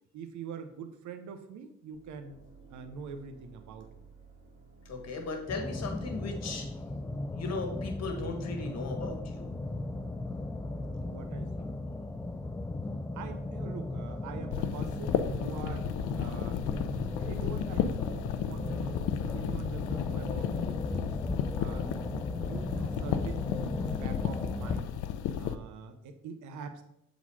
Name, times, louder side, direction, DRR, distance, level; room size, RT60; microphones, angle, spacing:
voice 1, 0.1-2.4 2.7-3.9 10.7-12.5 13.1-15.9 16.2-21.1 21.6-24.9 25.4-26.8, right 6 dB, 75° right, 8 dB, 0.8 m, -44 dB
sound 1, 1.9-12.7, right 3 dB, 25° right, 2.4 m, -55 dB
voice 2, 4.8-6.6 7.3-9.5, left 3 dB, 60° left, 4 dB, 1.6 m, -37 dB
sound 2, 5.5-24.8, left 2 dB, 10° left, 0.4 m, -37 dB
sound 3, 14.5-25.6, left 9 dB, 85° left, 0.5 m, -34 dB
7.2 x 3.9 x 4.7 m, 0.78 s
cardioid pair, 90°, 30 cm